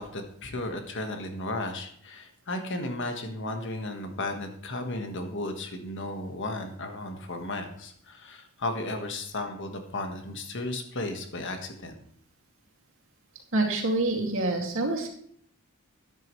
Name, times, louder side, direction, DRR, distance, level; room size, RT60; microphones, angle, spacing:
voice 1, 0.0-12.0, left 2 dB, 55° left, 5 dB, 1.5 m, -34 dB
voice 2, 13.5-15.1, right 2 dB, 60° right, 0 dB, 2.4 m, -26 dB
13.0 x 9.4 x 3.2 m, 0.63 s
head